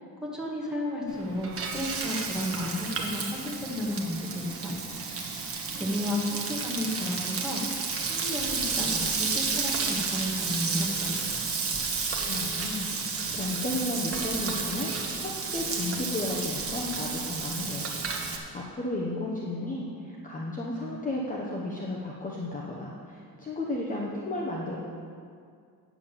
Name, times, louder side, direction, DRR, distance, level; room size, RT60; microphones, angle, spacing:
voice 1, 0.0-4.8 5.7-7.6 8.1-11.4, left 1 dB, ahead, -5 dB, 1.9 m, -33 dB
Frying (food), 1.1-18.4, right 4 dB, 35° right, 1.2 m, -32 dB
voice 2, 12.2-14.9 15.2-17.9 18.2-24.8, left 2 dB, 20° left, -3 dB, 1.0 m, -33 dB
9.3 x 7.2 x 7.2 m, 2.3 s
cardioid pair, 165°, 38 cm